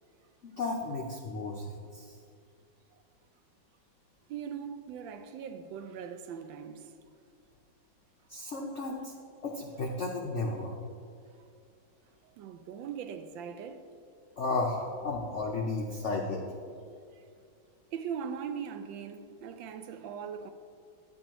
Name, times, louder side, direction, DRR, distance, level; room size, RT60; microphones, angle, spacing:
voice 1, 0.4-2.2 8.3-9.1 9.4-10.8 14.4-16.4, left 3 dB, 85° left, 0.6 m, -33 dB
voice 2, 4.3-6.9 12.4-13.8 17.1-17.2 17.9-20.5, right 7 dB, 75° right, 1.2 m, -40 dB
11.0 x 8.5 x 3.0 m
omnidirectional pair, 2.2 m